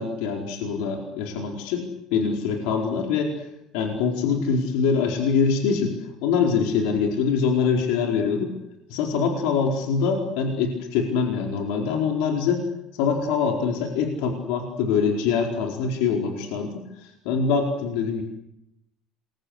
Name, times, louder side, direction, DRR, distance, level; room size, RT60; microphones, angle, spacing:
voice 1, 0.0-3.4 3.7-5.9 6.2-8.5 8.9-12.6 12.9-18.2, left 5 dB, 85° left, 3 dB, 4.6 m, -24 dB
28.5 x 23.5 x 8.2 m, 0.83 s
cardioid pair, 170°, 0 cm